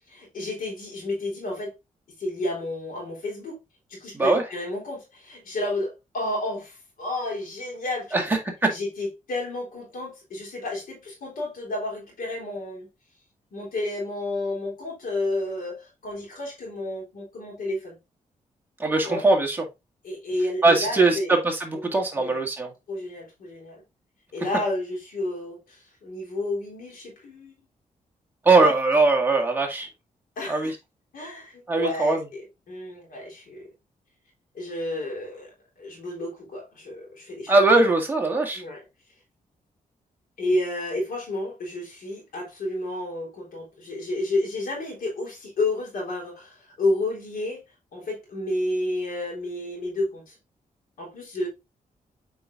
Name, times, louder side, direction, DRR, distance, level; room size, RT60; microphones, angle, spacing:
voice 1, 0.1-1.7 2.2-3.6 3.9-8.3 8.7-12.9 13.5-18.0 19.0-19.2 20.0-21.3 21.7-21.8 22.2-22.4 22.9-23.8 24.3-27.5 28.6-28.7 30.4-30.8 31.1-32.4 32.7-33.7 34.5-35.5 35.8-37.6 38.5-38.8 40.4-47.6 47.9-50.4 51.0-51.5, left 1 dB, 90° left, 3.6 m, -31 dB
voice 2, 8.1-8.7 18.8-19.6 20.6-22.7 28.4-29.9 30.5-30.7 31.7-32.2 37.5-38.6, right 3 dB, 15° right, 2.0 m, -21 dB
7.6 x 4.9 x 2.5 m
wide cardioid pair, 120°, 14 cm